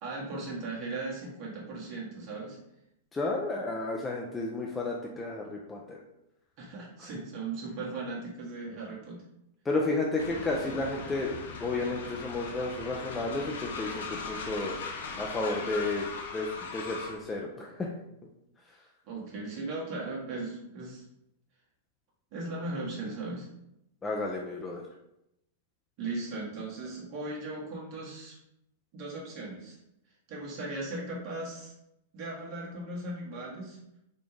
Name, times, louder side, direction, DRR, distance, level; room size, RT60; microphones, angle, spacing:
voice 1, 0.0-2.6 6.6-9.2 19.1-21.0 22.3-23.5 26.0-28.4 28.9-29.8 30.3-31.7 32.1-33.8, right 2 dB, 50° right, -4 dB, 1.4 m, -37 dB
voice 2, 3.1-6.0 9.7-14.9 15.2-16.1 16.3-17.9 24.0-24.8, left 2 dB, 15° left, -1 dB, 0.5 m, -32 dB
Train, 10.2-17.2, left 4 dB, 75° left, 0.6 m, -39 dB
4.2 x 2.3 x 3.2 m, 0.82 s
hypercardioid pair, 110°, 0 cm